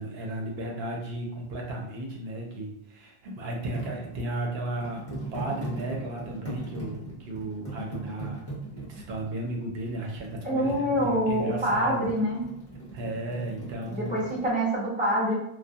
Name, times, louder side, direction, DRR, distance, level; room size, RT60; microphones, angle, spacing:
voice 1, 0.0-12.1 12.9-14.3, right 1 dB, 75° right, 0 dB, 0.8 m, -34 dB
sound 1, 3.7-14.5, right 3 dB, 15° left, 0.9 m, -40 dB
voice 2, 10.4-12.4 13.9-15.4, equal, 10° right, -7 dB, 0.6 m, -26 dB
2.2 x 2.1 x 2.6 m, 0.79 s
omnidirectional pair, 1.0 m